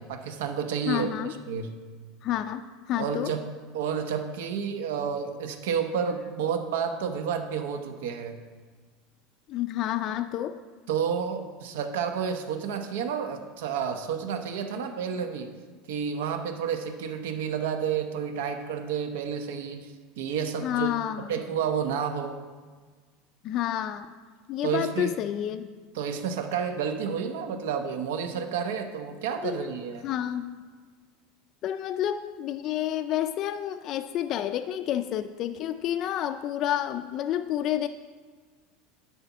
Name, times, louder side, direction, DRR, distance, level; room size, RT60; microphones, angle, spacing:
voice 1, 0.0-1.1 1.5-1.7 3.0-3.4 3.7-8.4 10.9-15.5 15.9-20.9 21.3-22.4 24.6-25.1 25.9-30.1, right 7 dB, 85° right, 6 dB, 0.9 m, -30 dB
voice 2, 0.9-1.4 2.2-3.3 9.5-10.6 20.6-21.3 23.4-24.1 24.5-25.7 29.4-29.7 30.0-30.6 31.6-37.9, left 11 dB, 35° left, 7 dB, 0.3 m, -29 dB
11.0 x 4.2 x 7.1 m, 1.5 s
supercardioid pair, 160°, 0 cm